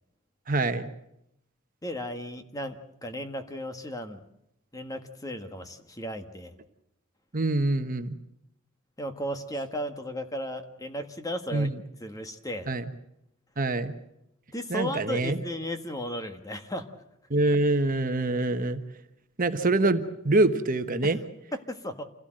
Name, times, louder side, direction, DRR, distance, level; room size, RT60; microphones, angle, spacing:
voice 1, 0.5-0.9 7.3-8.2 11.5-11.8 12.7-12.8 13.6-13.9 14.7-15.4 17.3-18.8 19.4-21.2, right 2 dB, 40° right, 8 dB, 1.3 m, -25 dB
voice 2, 1.8-4.2 4.7-6.6 9.0-11.7 12.0-12.7 14.5-16.9 21.0-21.2 21.5-22.0, equal, 15° left, 7 dB, 1.6 m, -35 dB
27.0 x 17.0 x 7.8 m, 0.81 s
head